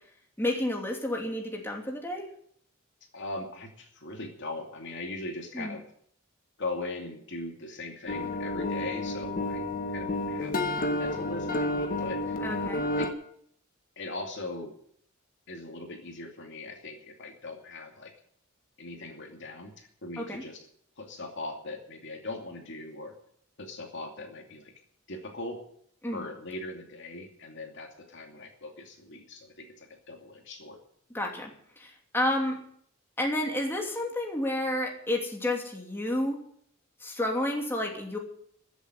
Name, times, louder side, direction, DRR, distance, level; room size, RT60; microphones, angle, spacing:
voice 1, 0.4-2.3 5.5-5.7 12.4-12.8 20.2-20.4 26.0-26.2 31.1-32.6 33.2-36.4 37.0-38.2, left 1 dB, 10° left, 0 dB, 2.8 m, -30 dB
voice 2, 3.1-5.8 6.6-9.7 9.9-12.4 13.0-13.1 14.0-14.8 15.5-18.1 18.8-20.6 21.0-23.1 23.6-24.7 25.1-25.6 26.1-30.8, left 2 dB, 60° left, 2 dB, 2.6 m, -40 dB
sound 1, 8.1-13.1, left 1 dB, 45° left, 1.7 m, -30 dB
14.5 x 8.2 x 9.9 m, 0.65 s
head